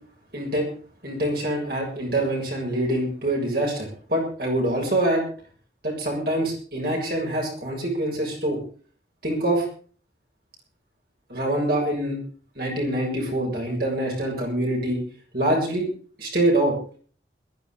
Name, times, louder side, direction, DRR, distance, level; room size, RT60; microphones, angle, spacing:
voice 1, 0.3-0.7 1.0-5.2 5.8-8.6 9.2-9.6 11.3-12.2 12.6-15.0 15.3-15.9 16.2-16.7, right 1 dB, 55° right, -1 dB, 7.0 m, -25 dB
22.0 x 12.5 x 3.9 m, 0.42 s
head